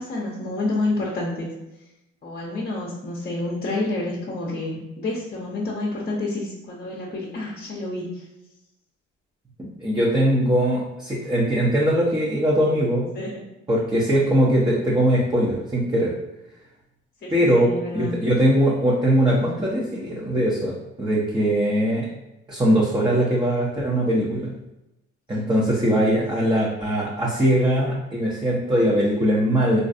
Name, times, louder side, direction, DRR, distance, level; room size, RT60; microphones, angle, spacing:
voice 1, 0.0-1.5 2.2-8.3 13.1-13.4 17.2-18.2 25.3-25.5, left 2 dB, 30° left, -4 dB, 0.8 m, -29 dB
voice 2, 9.8-13.1 13.7-16.1 17.3-22.1 22.5-24.5 25.3-29.8, equal, 15° right, -6 dB, 0.8 m, -21 dB
3.1 x 2.5 x 2.6 m, 0.92 s
hypercardioid pair, 55°, 32 cm